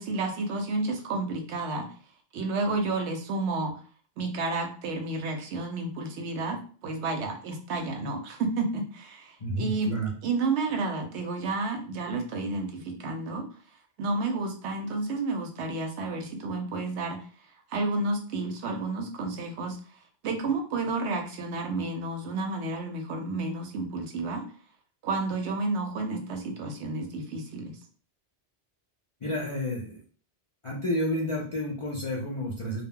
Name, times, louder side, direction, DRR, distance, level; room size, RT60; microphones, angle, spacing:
voice 1, 0.0-1.9 2.3-3.7 4.2-10.0 10.2-13.4 14.0-17.2 17.7-19.8 20.2-24.4 25.0-27.8, right 3 dB, 80° right, 4 dB, 0.9 m, -31 dB
voice 2, 9.4-10.1 29.2-30.0 30.6-32.8, equal, 55° left, -3 dB, 0.3 m, -30 dB
2.2 x 2.0 x 3.5 m, 0.42 s
omnidirectional pair, 1.1 m